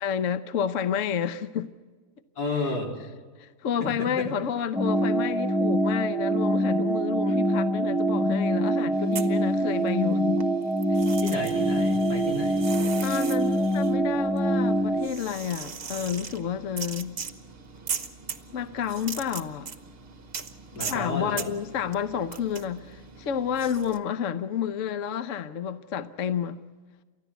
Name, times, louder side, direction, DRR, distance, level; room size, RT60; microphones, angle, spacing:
voice 1, 0.0-1.7 3.4-10.4 10.9-11.1 13.0-17.2 18.5-19.7 20.8-26.6, left 8 dB, 60° left, 1.1 m, -30 dB
voice 2, 2.4-2.9 3.8-4.3 11.2-12.6 20.7-21.5, left 3 dB, 90° left, 4.4 m, -31 dB
sound 1, 4.8-15.1, right 1 dB, ahead, 0.8 m, -24 dB
sound 2, 9.0-10.1 10.4-24.0, right 6 dB, 40° right, 1.1 m, -39 dB
29.5 x 14.0 x 8.1 m
omnidirectional pair, 1.7 m